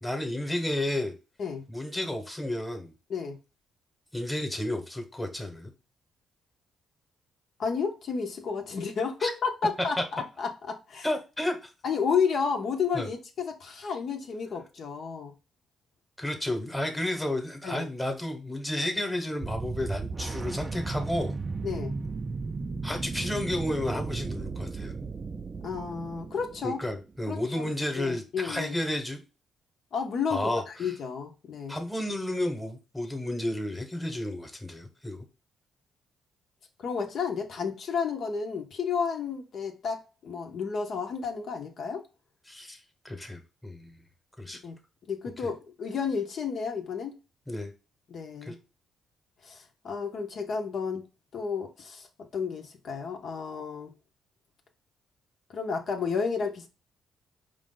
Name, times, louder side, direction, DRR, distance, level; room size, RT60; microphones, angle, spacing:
voice 1, 0.0-1.1 1.7-2.9 4.1-5.7 9.2-9.3 11.0-11.7 12.9-13.1 16.2-21.3 22.8-25.0 26.6-29.2 30.3-30.9 31.7-35.2 42.5-42.8 43.0-43.9 44.4-44.6 45.4-45.5 47.5-47.7 48.4-48.5, left 1 dB, 5° left, 1.1 m, -32 dB
voice 2, 7.6-11.1 11.8-15.3 17.6-17.9 21.6-21.9 25.6-26.8 27.3-27.6 28.0-28.8 29.9-31.7 36.8-42.0 44.6-44.8 45.1-47.1 48.1-48.6 49.4-51.0 51.3-52.1 52.3-53.9 55.5-56.7, left 5 dB, 60° left, 0.8 m, -31 dB
sound 1, 19.4-27.1, right 4 dB, 30° right, 0.4 m, -35 dB
4.8 x 2.5 x 3.8 m
cardioid pair, 90°, 0 cm